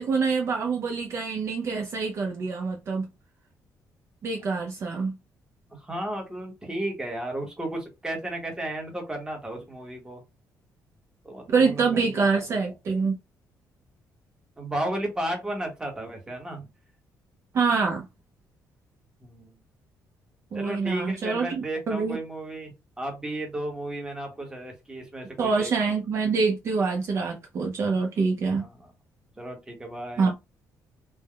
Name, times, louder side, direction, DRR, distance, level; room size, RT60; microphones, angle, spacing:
voice 1, 0.0-3.1 4.2-5.2 11.5-13.2 17.5-18.0 20.5-22.2 25.4-28.7 30.2-30.3, right 4 dB, 45° right, 0.4 m, -25 dB
voice 2, 5.7-10.2 11.2-12.5 14.6-16.7 19.2-19.5 20.5-25.7 28.6-28.9 29.4-30.3, right 1 dB, 10° right, 0.8 m, -34 dB
3.3 x 2.0 x 2.2 m
cardioid pair, 155°, 7 cm